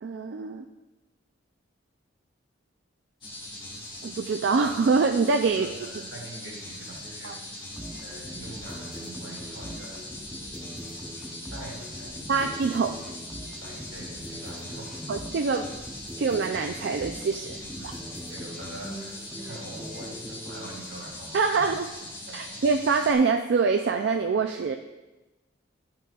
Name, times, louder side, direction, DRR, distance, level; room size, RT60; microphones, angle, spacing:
voice 1, 0.0-0.6 4.0-5.7 7.2-7.3 12.3-12.9 15.1-15.7 16.2-17.6 21.3-21.9 22.3-24.8, right 4 dB, 60° right, 5 dB, 0.3 m, -24 dB
sound 1, 3.2-23.1, left 1 dB, 25° left, 1.6 m, -41 dB
voice 2, 5.5-7.6 8.0-10.0 11.5-12.5 13.6-15.1 17.6-21.6 22.3-22.6, right 1 dB, 80° right, -3 dB, 2.3 m, -44 dB
sound 2, 7.8-20.7, equal, 5° right, 0.7 m, -42 dB
11.0 x 5.8 x 2.3 m, 1.1 s
head